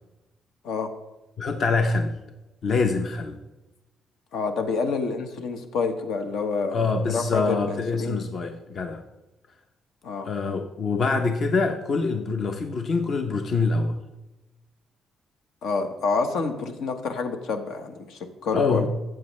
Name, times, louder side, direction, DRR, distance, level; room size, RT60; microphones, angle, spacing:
voice 1, 1.4-2.1 2.6-3.4 6.7-9.0 10.2-13.9 18.5-18.9, left 4 dB, 40° left, 6 dB, 0.7 m, -25 dB
voice 2, 4.3-6.9 7.1-8.3 10.0-10.3 15.6-18.9, left 4 dB, 75° left, 6 dB, 1.2 m, -28 dB
14.0 x 7.7 x 3.2 m, 1.0 s
cardioid pair, 155°, 0 cm